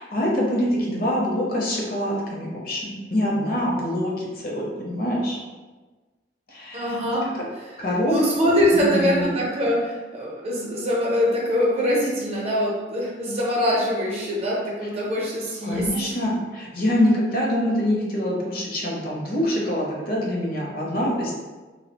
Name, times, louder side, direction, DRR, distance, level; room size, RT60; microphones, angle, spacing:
voice 1, 0.0-5.4 6.5-6.9 7.8-8.1 8.7-9.4 15.6-21.3, left 1 dB, 50° left, -3 dB, 0.6 m, -25 dB
voice 2, 6.7-7.4 8.1-16.1, equal, 35° right, -4 dB, 0.5 m, -23 dB
2.7 x 2.1 x 2.8 m, 1.3 s
head